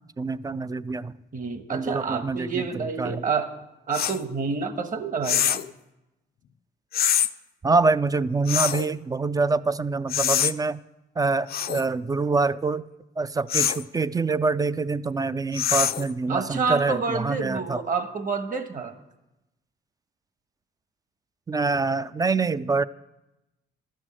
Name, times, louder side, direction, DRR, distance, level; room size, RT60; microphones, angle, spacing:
voice 1, 0.2-1.1 1.7-2.5 3.0-3.2 7.6-10.8 11.2-12.9 13.2-17.8 21.5-22.8, right 3 dB, 20° right, 15 dB, 0.3 m, -25 dB
voice 2, 1.3-3.5 3.9-5.6 16.3-18.9, right 5 dB, 40° right, 8 dB, 1.3 m, -28 dB
sound 1, 3.9-4.2 5.2-5.7 6.9-7.3 8.5-8.9 10.1-10.5 11.5-11.9 13.5-13.8 15.5-16.1, left 10 dB, 50° left, 0.5 m, -24 dB
12.5 x 6.4 x 7.5 m, 0.96 s
cardioid pair, 90°, 20 cm